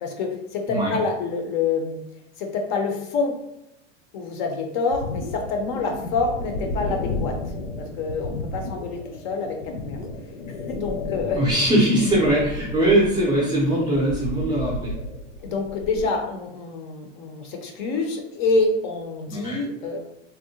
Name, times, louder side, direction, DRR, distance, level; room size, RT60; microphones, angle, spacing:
voice 1, 0.0-2.0 2.4-3.4 4.1-7.4 7.8-10.0 10.5-11.4 15.4-20.0, left 4 dB, 40° left, 4 dB, 0.5 m, -27 dB
sound 1, 4.9-16.1, left 2 dB, 80° left, 0.7 m, -33 dB
voice 2, 11.4-14.9 19.3-19.6, right 1 dB, 10° right, -4 dB, 0.4 m, -21 dB
3.5 x 2.1 x 2.7 m, 0.83 s
supercardioid pair, 150°, 37 cm